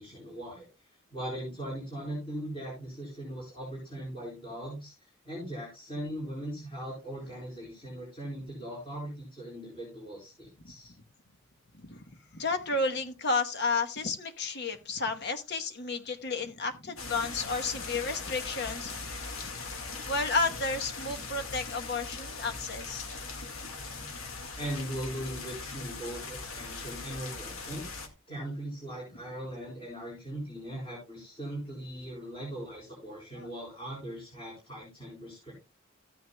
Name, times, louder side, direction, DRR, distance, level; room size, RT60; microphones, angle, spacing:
voice 1, 0.0-4.9 5.2-10.9 24.5-27.9 28.3-35.6, right 1 dB, 25° left, -5 dB, 4.5 m, -39 dB
voice 2, 11.8-19.1 19.4-19.5 20.1-23.4 33.3-33.5, left 3 dB, 55° left, 6 dB, 1.1 m, -32 dB
sound 1, 17.0-28.1, left 3 dB, 85° left, 1.9 m, -40 dB
14.0 x 9.3 x 2.3 m, 0.26 s
head